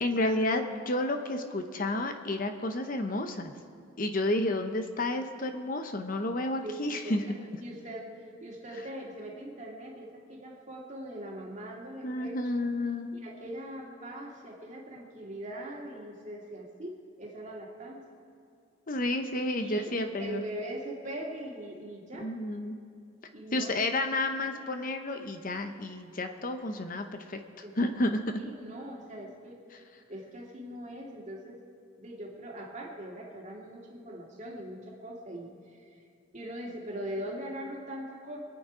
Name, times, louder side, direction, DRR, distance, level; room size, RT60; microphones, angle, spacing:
voice 1, 0.0-3.5 4.0-7.2 12.0-13.3 18.9-20.4 22.2-22.8 23.5-27.4 27.8-28.4, left 1 dB, 45° left, 6 dB, 0.8 m, -31 dB
voice 2, 6.6-8.1 8.4-12.3 13.1-18.1 19.6-22.3 23.3-23.8 27.6-27.9 28.4-29.6 30.1-31.6 32.0-36.0 36.3-38.4, right 1 dB, 35° right, -1 dB, 2.1 m, -41 dB
25.0 x 9.1 x 4.9 m, 2.5 s
head